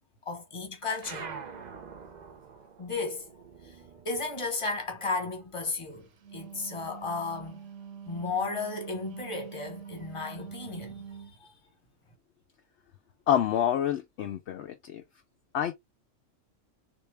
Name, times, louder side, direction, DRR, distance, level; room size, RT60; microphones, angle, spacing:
voice 1, 0.3-1.3 2.8-3.3 3.6-3.8 4.0-7.7 8.1-11.5, left 3 dB, 25° left, 1.1 m, -34 dB
sound 1, 1.0-5.9 6.2-7.6, right 5 dB, 45° right, 0.6 m, -46 dB
Wind instrument woodwind instrument, 6.1-11.4, right 7 dB, 70° right, 1.0 m, -45 dB
voice 2, 13.3-15.0 15.5-15.7, left 10 dB, 65° left, 0.8 m, -27 dB
3.3 x 2.7 x 3.2 m
omnidirectional pair, 1.4 m